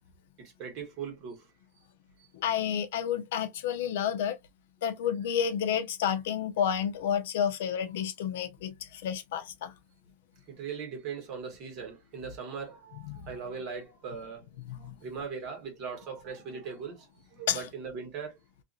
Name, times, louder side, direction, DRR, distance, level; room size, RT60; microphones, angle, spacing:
voice 1, 0.4-1.5 2.2-2.3 10.5-14.5 14.7-18.4, right 6 dB, 35° right, 1.5 m, -40 dB
voice 2, 2.3-4.4 4.8-9.7 13.0-13.3 14.7-14.9 17.5-17.6, left 8 dB, 75° left, 0.6 m, -30 dB
2.9 x 2.5 x 2.6 m
supercardioid pair, 160°, 0 cm